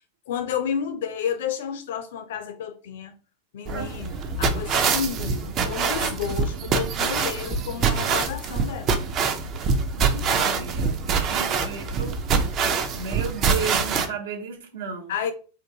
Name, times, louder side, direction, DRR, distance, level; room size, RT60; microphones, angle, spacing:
voice 1, 0.3-3.1 3.5-9.0 11.3-11.6 15.1-15.3, left 8 dB, 55° left, 0.4 m, -31 dB
sound 1, 3.7-14.1, right 5 dB, 35° right, 0.5 m, -25 dB
voice 2, 9.9-11.0 11.2-12.2 12.9-15.1, right 5 dB, 60° right, 0.9 m, -34 dB
3.5 x 2.5 x 2.7 m
figure-of-eight pair, 90°, 0 cm